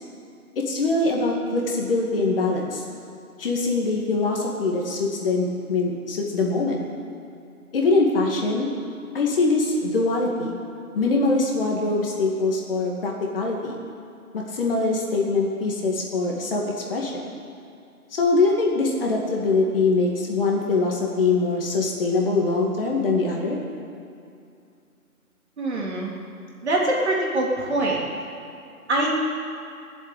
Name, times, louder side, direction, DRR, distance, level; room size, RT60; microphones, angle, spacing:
voice 1, 0.6-2.8 3.4-6.8 7.7-8.7 9.1-10.6 10.9-13.8 14.3-16.6 16.9-17.1 18.1-23.6, left 3 dB, 40° left, -1 dB, 2.3 m, -23 dB
voice 2, 25.6-26.1 26.6-28.0 28.9-29.1, right 1 dB, 45° right, -3 dB, 3.4 m, -23 dB
19.0 x 7.7 x 8.9 m, 2.5 s
figure-of-eight pair, 150°, 45 cm